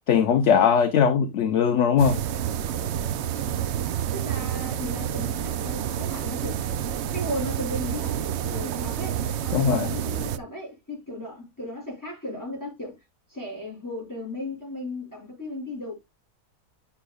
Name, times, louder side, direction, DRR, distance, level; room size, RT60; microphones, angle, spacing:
voice 1, 0.1-2.2 9.5-9.9, left 7 dB, 55° left, 0.9 m, -20 dB
sound 1, 2.0-10.4, right 10 dB, 65° right, 0.7 m, -29 dB
voice 2, 4.1-6.6 7.1-8.1 8.4-12.9 13.3-16.0, left 1 dB, 10° left, 6.3 m, -35 dB
9.8 x 6.5 x 2.3 m
omnidirectional pair, 1.7 m